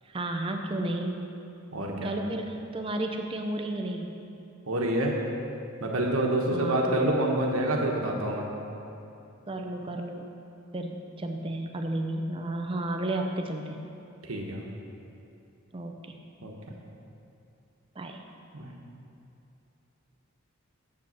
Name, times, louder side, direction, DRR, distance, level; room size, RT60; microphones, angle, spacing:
voice 1, 0.1-1.3 2.0-4.2 6.5-7.0 9.5-10.3 10.7-13.9 15.7-16.2 18.0-18.2, right 1 dB, 25° right, 4 dB, 0.5 m, -32 dB
voice 2, 1.7-2.1 4.7-5.2 5.8-8.5 14.2-14.6 16.4-16.5 18.5-18.7, right 1 dB, 85° right, 0 dB, 1.2 m, -27 dB
7.7 x 7.2 x 7.1 m, 2.7 s
head